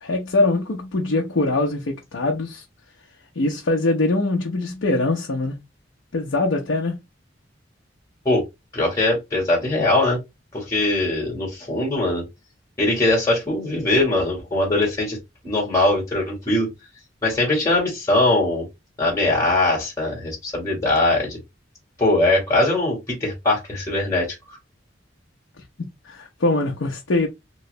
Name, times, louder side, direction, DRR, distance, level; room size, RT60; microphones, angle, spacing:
voice 1, 0.0-2.6 3.4-5.6 6.1-7.0 25.8-27.3, left 2 dB, 75° left, 0.7 m, -23 dB
voice 2, 8.7-10.2 10.5-12.2 12.8-15.2 15.4-16.7 17.2-18.6 19.0-21.4 22.0-24.6, left 2 dB, 15° left, 1.6 m, -21 dB
3.1 x 2.8 x 3.1 m
head